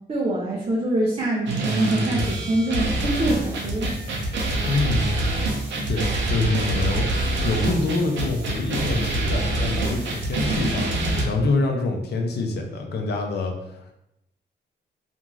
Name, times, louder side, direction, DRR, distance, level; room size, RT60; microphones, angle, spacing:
voice 1, 0.1-3.9, right 1 dB, 35° right, -2 dB, 0.4 m, -24 dB
sound 1, 1.5-11.2, right 2 dB, 90° right, 0.6 m, -25 dB
voice 2, 4.6-5.2 5.9-13.9, left 3 dB, 65° left, 3 dB, 0.5 m, -26 dB
2.5 x 2.3 x 3.0 m, 0.84 s
wide cardioid pair, 165°, 18 cm